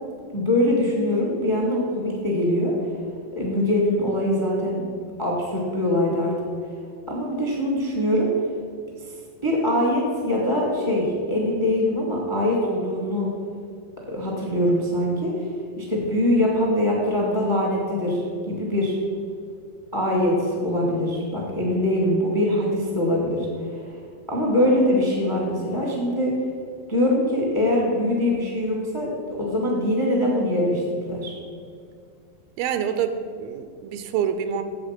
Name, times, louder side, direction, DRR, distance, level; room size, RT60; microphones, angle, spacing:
voice 1, 0.3-2.7 3.3-4.8 5.2-6.3 7.1-8.3 9.4-13.3 14.1-15.5 15.8-19.0 19.9-23.5 24.3-26.3 26.9-29.1 29.4-31.3, left 1 dB, 15° left, -2 dB, 1.0 m, -23 dB
voice 2, 32.6-34.6, right 8 dB, 85° right, 9 dB, 2.4 m, -26 dB
8.2 x 7.7 x 5.9 m, 2.2 s
omnidirectional pair, 4.2 m